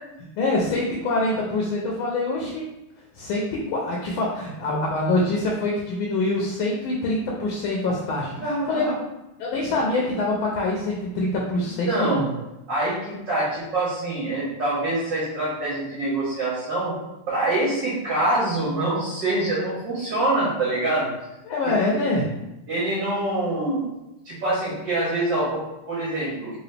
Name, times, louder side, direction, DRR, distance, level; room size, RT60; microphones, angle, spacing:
voice 1, 0.4-2.7 3.1-8.9 9.4-12.3 21.5-22.3, left 2 dB, 75° left, -2 dB, 1.4 m, -25 dB
voice 2, 8.3-9.0 11.9-12.3 12.7-16.9 17.3-21.1 21.6-22.0 22.7-23.9 24.2-26.5, right 2 dB, 60° right, -7 dB, 1.5 m, -25 dB
3.8 x 2.7 x 3.3 m, 0.95 s
omnidirectional pair, 2.4 m